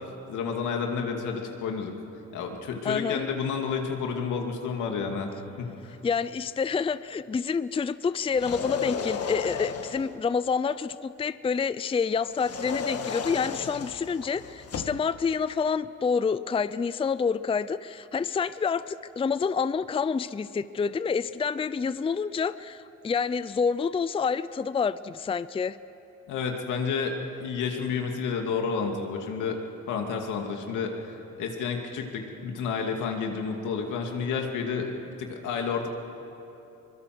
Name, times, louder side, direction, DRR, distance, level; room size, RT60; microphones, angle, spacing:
voice 1, 0.0-2.0 2.3-5.3 5.6-5.9 26.3-29.6 29.9-34.9 35.2-35.9, left 5 dB, 85° left, 3 dB, 2.5 m, -30 dB
voice 2, 2.8-3.2 6.0-25.8, left 5 dB, 20° left, 15 dB, 0.5 m, -28 dB
sound 1, 8.3-10.2 12.3-15.0, left 6 dB, 50° left, 1.6 m, -34 dB
23.5 x 22.0 x 6.2 m, 3.0 s
cardioid pair, 90°, 30 cm